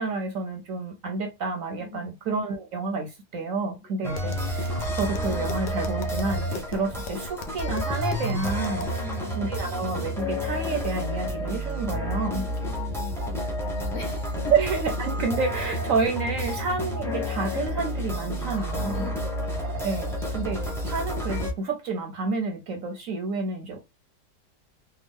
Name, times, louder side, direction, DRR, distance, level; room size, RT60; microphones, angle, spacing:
voice 1, 0.0-8.9 9.3-12.4 14.5-19.1 19.8-23.8, right 4 dB, 65° right, 0.9 m, -29 dB
voice 2, 1.8-2.1 3.8-3.9 9.0-9.4 12.3-14.5 18.9-19.4, left 5 dB, 55° left, 0.9 m, -41 dB
sound 1, 4.0-21.5, equal, 5° left, 0.6 m, -30 dB
Tap, 4.1-9.0, left 3 dB, 85° left, 1.2 m, -40 dB
3.4 x 2.1 x 3.5 m
omnidirectional pair, 1.8 m